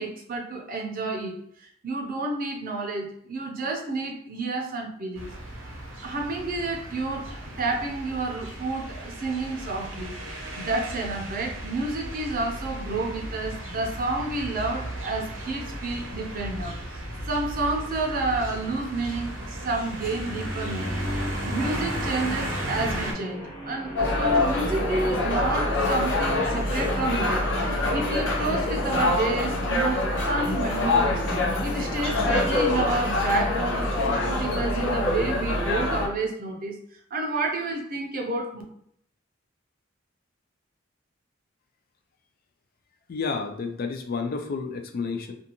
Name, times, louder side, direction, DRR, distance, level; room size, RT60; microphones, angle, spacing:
voice 1, 0.0-5.3 6.0-10.1 10.5-21.1 21.4-31.2 31.6-36.8 37.1-38.6, right 2 dB, 45° right, 1 dB, 0.5 m, -30 dB
sound 1, 5.2-23.1, right 1 dB, 85° right, 0.8 m, -35 dB
Guitar, 21.6-29.0, left 1 dB, 25° left, 1.2 m, -38 dB
sound 2, 24.0-36.1, left 2 dB, 65° left, 0.8 m, -25 dB
voice 2, 43.1-45.3, left 4 dB, 50° left, 6 dB, 0.3 m, -30 dB
2.5 x 2.3 x 2.8 m, 0.69 s
head